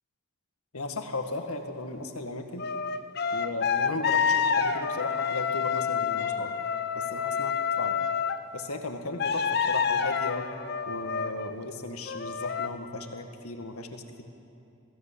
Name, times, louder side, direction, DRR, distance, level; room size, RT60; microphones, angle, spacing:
voice 1, 0.7-2.6 3.3-6.6 6.9-7.5 7.8-8.0 8.5-10.5 10.9-14.2, left 2 dB, 90° left, 6 dB, 1.8 m, -36 dB
sound 1, 2.6-8.4 9.2-11.5 12.1-12.7, left 6 dB, 50° left, 0.7 m, -28 dB
21.0 x 15.5 x 8.5 m, 2.7 s
head